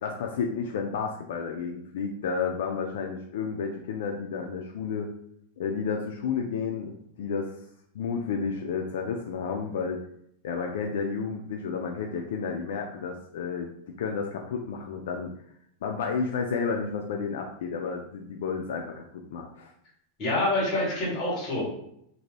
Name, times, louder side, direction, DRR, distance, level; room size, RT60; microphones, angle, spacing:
voice 1, 0.0-5.1 5.6-6.9 7.2-7.5 7.9-10.0 10.4-13.7 14.0-15.3 15.8-19.7, left 5 dB, 75° left, 2 dB, 0.4 m, -31 dB
voice 2, 20.2-21.7, left 1 dB, 30° left, -5 dB, 1.4 m, -26 dB
2.6 x 2.5 x 3.2 m, 0.71 s
supercardioid pair, 170°, 0 cm